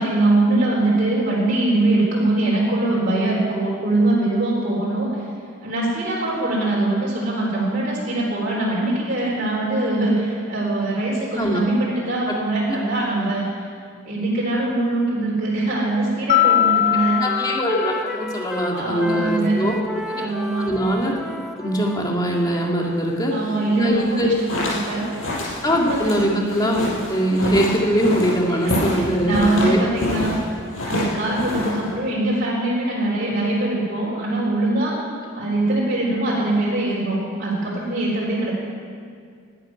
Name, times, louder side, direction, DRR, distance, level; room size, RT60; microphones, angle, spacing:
voice 1, 0.0-5.2 5.6-13.7 14.0-17.2 18.7-19.6 20.2-20.7 23.3-25.1 25.7-26.1 28.5-30.4 30.8-35.0 35.4-38.5, right 2 dB, 40° right, -5 dB, 3.7 m, -22 dB
Wind instrument woodwind instrument, 15.5-15.9 16.2-22.8, equal, ahead, 0.6 m, -34 dB
Mallet percussion, 16.3-18.7, left 11 dB, 35° left, 0.4 m, -21 dB
voice 2, 17.2-19.8 20.1-20.3 20.6-21.1 21.6-23.3 23.7-24.3 25.6-29.8 30.1-30.2, equal, 20° left, -1 dB, 1.9 m, -22 dB
sound 1, 24.1-30.4 30.7-31.9, left 1 dB, 70° left, 5.4 m, -27 dB
12.0 x 11.5 x 9.9 m, 2.1 s
head